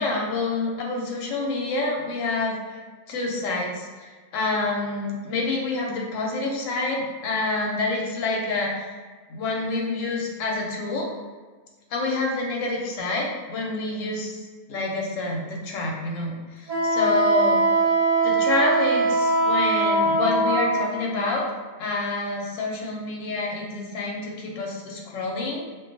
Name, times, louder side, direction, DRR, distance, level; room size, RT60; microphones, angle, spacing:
voice 1, 0.0-2.8 3.1-9.0 9.3-11.1 11.9-17.6 18.2-21.5 21.8-25.7, left 2 dB, 70° left, -2 dB, 0.9 m, -27 dB
Wind instrument woodwind instrument, 16.7-20.8, right 2 dB, 55° right, 0.8 m, -21 dB
2.4 x 2.2 x 2.5 m, 1.4 s
omnidirectional pair, 1.5 m